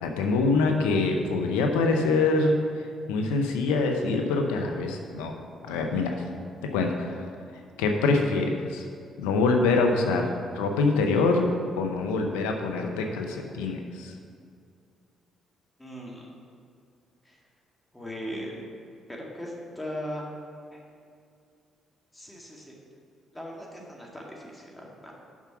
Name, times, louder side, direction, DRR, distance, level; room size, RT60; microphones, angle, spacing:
voice 1, 0.0-2.5 3.1-5.3 5.7-6.2 6.7-7.3 7.8-8.8 9.2-10.3 10.5-11.5 11.8-14.1, left 3 dB, 85° left, 3 dB, 0.7 m, -25 dB
voice 2, 15.8-16.3 17.3-17.4 17.9-18.6 19.1-20.2 22.1-22.8 23.3-25.1, equal, 10° left, -2 dB, 2.0 m, -38 dB
7.3 x 5.9 x 5.8 m, 2.3 s
hypercardioid pair, 55°, 0 cm